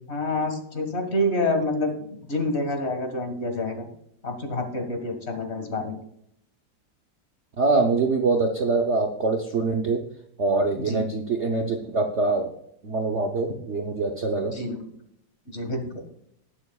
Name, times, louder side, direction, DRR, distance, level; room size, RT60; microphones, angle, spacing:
voice 1, 0.1-2.0 2.3-3.8 4.2-6.0 10.8-11.0 14.5-14.8 15.5-15.9, left 1 dB, 35° left, 4 dB, 1.8 m, -27 dB
voice 2, 7.6-10.0 10.4-12.5 12.8-14.6, right 3 dB, 50° right, 2 dB, 0.9 m, -24 dB
19.5 x 6.9 x 2.3 m, 0.72 s
omnidirectional pair, 2.1 m